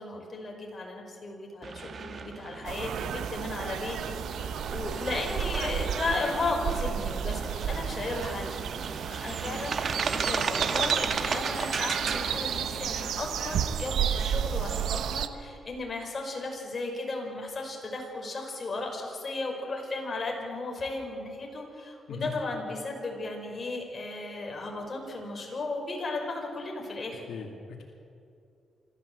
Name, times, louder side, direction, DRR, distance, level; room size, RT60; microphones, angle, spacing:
voice 1, 0.0-27.4, left 2 dB, 35° left, 1 dB, 5.3 m, -35 dB
sound 1, 1.6-13.1, right 5 dB, 50° right, 1.5 m, -35 dB
sound 2, 2.6-15.3, right 8 dB, 85° right, 1.0 m, -32 dB
voice 2, 27.3-27.9, left 4 dB, 90° left, 1 dB, 2.5 m, -39 dB
26.0 x 14.0 x 8.0 m, 2.5 s
cardioid pair, 100°, 0 cm